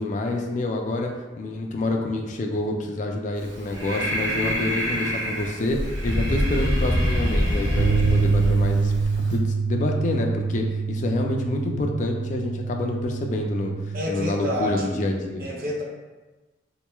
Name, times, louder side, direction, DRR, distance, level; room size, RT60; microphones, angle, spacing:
voice 1, 0.0-8.9 9.3-15.5, left 2 dB, 40° left, 2 dB, 0.3 m, -27 dB
Breathing, 3.4-9.4, equal, 65° right, 1.1 m, -25 dB
sound 1, 7.8-14.0, right 4 dB, 80° right, 0.4 m, -25 dB
voice 2, 13.9-15.0 15.4-15.8, left 1 dB, 45° right, -2 dB, 0.7 m, -28 dB
4.0 x 3.0 x 2.2 m, 1.2 s
head